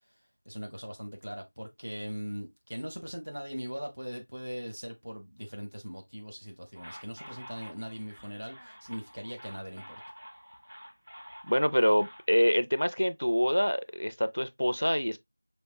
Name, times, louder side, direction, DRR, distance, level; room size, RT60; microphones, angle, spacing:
voice 1, 0.5-10.0, equal, 40° right, 0.9 m, -40 dB
sound 1, 6.7-12.2, equal, 15° right, 0.6 m, -49 dB
voice 2, 11.4-15.2, equal, 60° left, 0.4 m, -26 dB
5.2 x 3.3 x 2.2 m
figure-of-eight pair, 180°, 0 cm